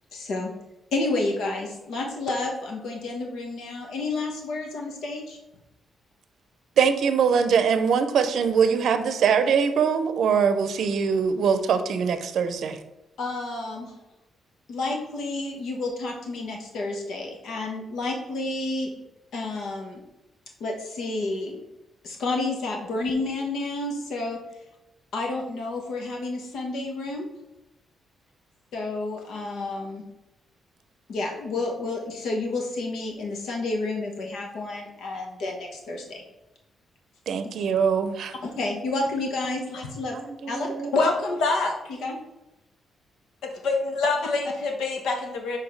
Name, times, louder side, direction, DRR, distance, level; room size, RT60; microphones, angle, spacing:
voice 1, 0.1-0.5 0.9-5.4 13.2-13.9 14.7-18.9 19.3-20.0 20.6-21.6 22.0-24.4 25.1-27.3 28.7-30.0 31.1-36.2 38.4-40.2 40.5-40.7 41.9-42.2 44.2-44.5, left 2 dB, 70° left, 1 dB, 1.1 m, -30 dB
voice 2, 6.8-12.8 37.3-38.3 40.4-40.9, right 6 dB, 65° right, 9 dB, 0.6 m, -22 dB
voice 3, 40.9-41.7 43.4-45.6, left 3 dB, 90° left, 3 dB, 1.3 m, -25 dB
5.0 x 4.4 x 5.3 m, 0.92 s
wide cardioid pair, 165°, 0 cm